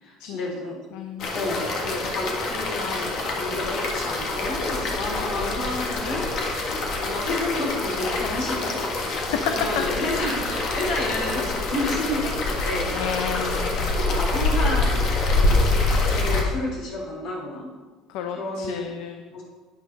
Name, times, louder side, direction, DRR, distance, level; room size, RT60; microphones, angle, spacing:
voice 1, 0.0-0.8 1.3-8.8 9.4-13.0 13.3-13.6 14.1-15.7 16.1-17.7 18.3-18.9 19.3-19.4, left 2 dB, 65° left, -2 dB, 4.0 m, -31 dB
voice 2, 0.9-1.3 9.3-9.4 9.8-9.9 12.9-14.1 18.1-19.2, left 8 dB, 85° left, 6 dB, 0.8 m, -31 dB
sound 1, 1.2-16.4, left 2 dB, 45° left, 1.7 m, -25 dB
11.5 x 9.5 x 4.1 m, 1.3 s
cardioid pair, 160°, 0 cm